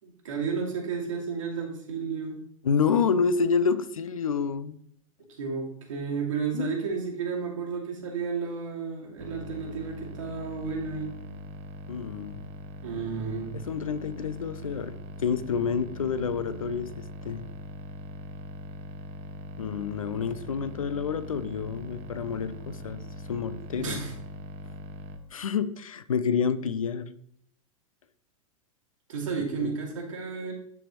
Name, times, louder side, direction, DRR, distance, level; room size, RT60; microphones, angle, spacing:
voice 1, 0.0-2.4 5.2-11.2 12.8-13.6 23.8-24.1 29.1-30.5, right 5 dB, 65° right, -1 dB, 2.3 m, -32 dB
voice 2, 2.6-4.8 6.5-6.7 11.9-12.4 13.7-17.5 19.6-23.0 23.3-24.0 25.3-27.1 29.4-29.7, left 6 dB, 70° left, 13 dB, 0.6 m, -28 dB
sound 1, 9.2-25.2, right 1 dB, 35° right, 0.9 m, -41 dB
12.0 x 4.2 x 3.0 m, 0.67 s
figure-of-eight pair, 95°, 18 cm